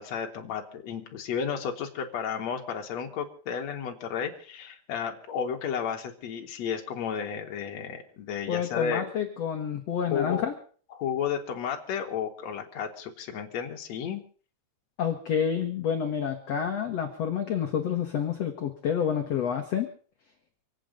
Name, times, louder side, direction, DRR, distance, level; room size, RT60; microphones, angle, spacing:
voice 1, 0.0-9.1 10.1-10.4 10.9-14.2, left 7 dB, 55° left, 2 dB, 2.1 m, -32 dB
voice 2, 8.5-10.5 15.0-19.9, left 8 dB, 85° left, 4 dB, 1.4 m, -29 dB
26.0 x 9.1 x 5.1 m, 0.43 s
omnidirectional pair, 5.0 m